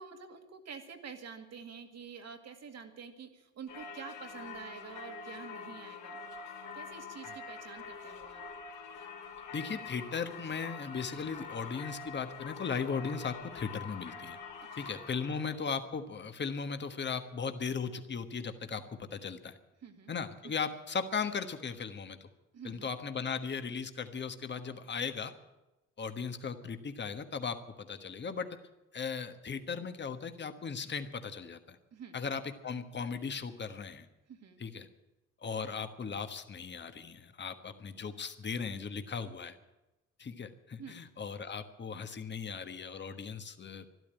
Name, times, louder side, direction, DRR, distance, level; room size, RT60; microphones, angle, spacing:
voice 1, 0.0-6.2 6.7-8.4 14.8-14.9 15.3-15.4 19.8-20.1 20.4-20.6 22.5-22.9 31.9-32.2 34.3-34.6 40.8-41.0, right 6 dB, 60° right, 6 dB, 2.1 m, -48 dB
Singing / Church bell, 3.7-15.6, left 5 dB, 80° left, 3.1 m, -45 dB
voice 2, 9.5-14.4 14.7-19.6 20.1-22.3 22.6-25.3 26.0-28.6 28.9-31.8 32.1-34.1 34.6-34.9 35.4-39.6 40.2-43.9, left 5 dB, 35° left, 8 dB, 1.3 m, -37 dB
12.5 x 12.0 x 8.9 m, 1.0 s
cardioid pair, 90°, 30 cm